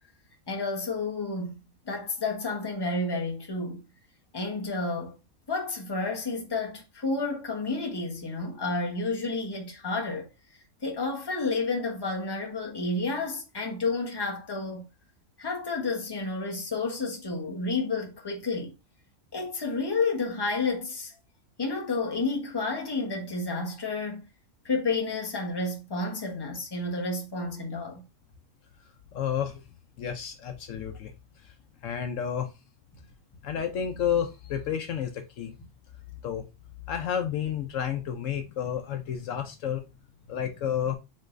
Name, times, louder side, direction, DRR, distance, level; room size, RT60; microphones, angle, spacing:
voice 1, 0.5-3.8 4.3-5.2 5.5-10.3 10.8-14.8 15.4-18.7 19.3-21.1 21.6-24.3 24.6-28.0, left 3 dB, 20° left, 1.0 m, -30 dB
voice 2, 29.1-29.6 30.0-31.1 31.8-32.5 33.4-35.5 36.2-36.4 36.9-39.8 40.3-41.0, left 8 dB, 70° left, 1.0 m, -30 dB
5.6 x 3.3 x 2.5 m
omnidirectional pair, 1.4 m